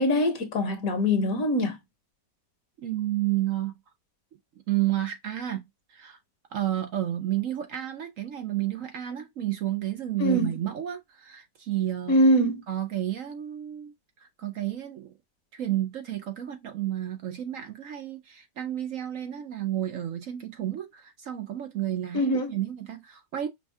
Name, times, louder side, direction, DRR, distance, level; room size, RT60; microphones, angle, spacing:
voice 1, 0.0-1.8 10.2-10.5 12.1-12.6 22.1-22.5, equal, 60° left, 1.4 m, -23 dB
voice 2, 2.8-3.7 4.7-6.2 6.5-12.2 12.7-13.9 14.2-15.1 15.5-23.5, right 13 dB, 60° right, 0.9 m, -31 dB
5.4 x 2.3 x 3.3 m
omnidirectional pair, 1.8 m